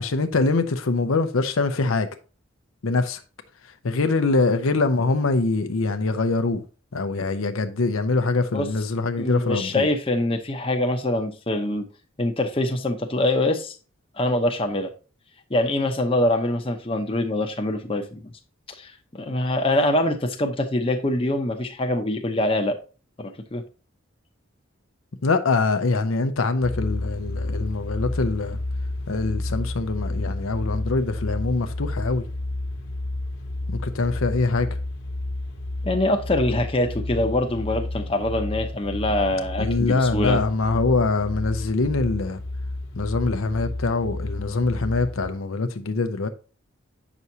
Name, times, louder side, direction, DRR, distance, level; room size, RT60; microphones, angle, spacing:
voice 1, 0.0-2.1 2.8-3.2 3.8-6.6 6.9-9.9 25.2-28.6 29.1-32.2 33.7-34.7 39.6-42.4 42.9-46.3, left 3 dB, 90° left, 0.7 m, -23 dB
voice 2, 9.2-11.9 12.2-13.7 14.2-14.9 15.5-18.3 18.7-22.8 23.2-23.6 35.8-40.4, left 1 dB, 25° left, 0.8 m, -24 dB
sound 1, 26.6-45.3, left 2 dB, 55° left, 1.3 m, -31 dB
8.0 x 6.0 x 2.8 m
head